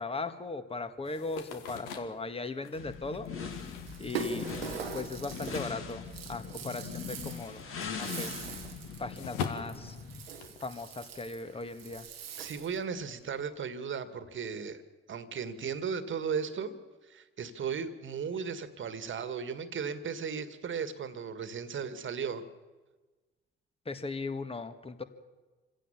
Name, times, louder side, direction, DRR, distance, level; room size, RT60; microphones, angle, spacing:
voice 1, 0.0-3.3 4.0-4.5 4.9-6.0 6.3-7.6 7.9-8.4 9.0-9.9 10.6-12.1 23.8-25.0, left 3 dB, 20° left, 10 dB, 1.8 m, -38 dB
sound 1, 1.0-6.5 6.8-10.7, left 6 dB, 70° left, 1.8 m, -43 dB
sound 2, 2.7-10.3, left 6 dB, 45° left, 2.8 m, -41 dB
Rattle (instrument), 3.9-12.8, right 5 dB, 80° right, 1.3 m, -42 dB
voice 2, 12.4-14.8 15.1-16.7 17.0-22.4, right 6 dB, 40° right, 12 dB, 1.9 m, -36 dB
27.0 x 16.5 x 7.2 m, 1.2 s
figure-of-eight pair, 45°, 30 cm